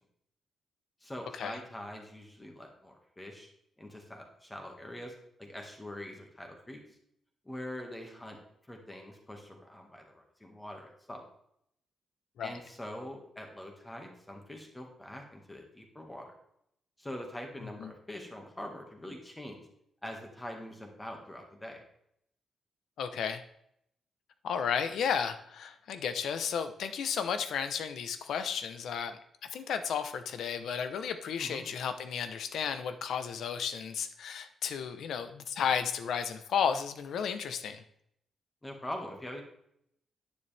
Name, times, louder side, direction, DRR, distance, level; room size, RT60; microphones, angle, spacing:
voice 1, 1.0-3.5 3.8-6.8 7.4-8.4 8.7-11.2 12.4-16.4 17.0-19.7 20.0-21.8 31.4-31.6 38.6-39.4, left 1 dB, 10° left, 2 dB, 1.7 m, -44 dB
voice 2, 23.0-23.4 24.4-29.1 29.5-37.8, left 7 dB, 70° left, 9 dB, 0.8 m, -33 dB
10.0 x 9.6 x 3.4 m, 0.73 s
wide cardioid pair, 160°, 0 cm